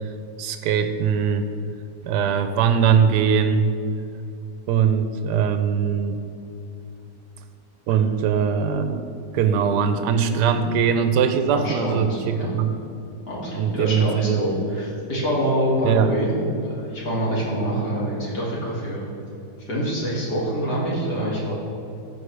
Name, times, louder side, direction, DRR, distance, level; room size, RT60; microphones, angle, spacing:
voice 1, 0.4-1.5 2.0-3.7 4.7-6.2 7.9-9.1 9.3-12.8 13.3-14.4 15.8-16.1, right 7 dB, 75° right, 8 dB, 1.1 m, -21 dB
voice 2, 11.5-12.5 13.3-16.3 16.6-19.0 19.7-21.5, equal, 65° left, -6 dB, 2.7 m, -25 dB
14.0 x 5.0 x 3.3 m, 2.7 s
omnidirectional pair, 1.9 m